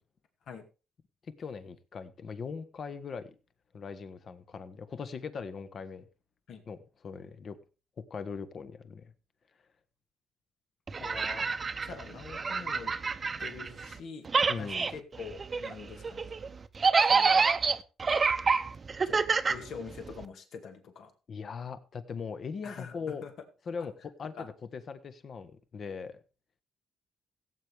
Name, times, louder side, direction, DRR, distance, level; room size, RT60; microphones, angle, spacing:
voice 1, 1.4-3.3 3.7-6.0 6.7-7.6 8.1-9.1 14.5-14.9 21.3-23.2 23.6-26.2, left 5 dB, 50° left, 1.2 m, -40 dB
sound 1, 10.9-14.0 14.2-20.2, right 5 dB, 35° right, 0.8 m, -28 dB
voice 2, 11.0-11.4 11.8-12.9 13.4-14.3 14.6-16.2 17.1-17.5 19.0-19.2 19.5-21.1 22.6-22.9 23.2-23.3 24.4-24.5, left 6 dB, 70° left, 2.1 m, -44 dB
17.0 x 8.0 x 3.5 m
cardioid pair, 90°, 0 cm